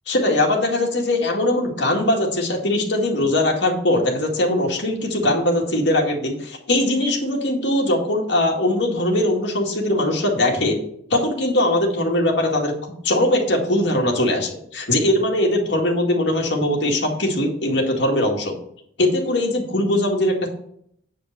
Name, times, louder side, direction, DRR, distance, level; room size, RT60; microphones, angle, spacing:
voice 1, 0.1-10.8 11.1-18.5 19.0-20.5, left 1 dB, 70° left, 0 dB, 2.2 m, -21 dB
8.7 x 5.2 x 6.6 m, 0.69 s
head